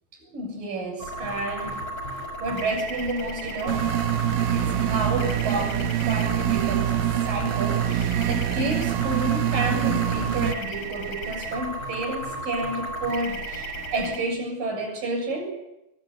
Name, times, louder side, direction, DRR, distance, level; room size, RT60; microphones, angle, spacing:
voice 1, 0.3-1.9 2.4-3.9 4.5-15.5, right 2 dB, 65° right, 2 dB, 8.8 m, -30 dB
sound 1, 1.0-14.2, right 1 dB, 25° left, 6.4 m, -34 dB
sound 2, 3.7-10.5, right 11 dB, 85° right, 3.1 m, -25 dB
24.0 x 21.5 x 8.3 m, 0.89 s
omnidirectional pair, 4.2 m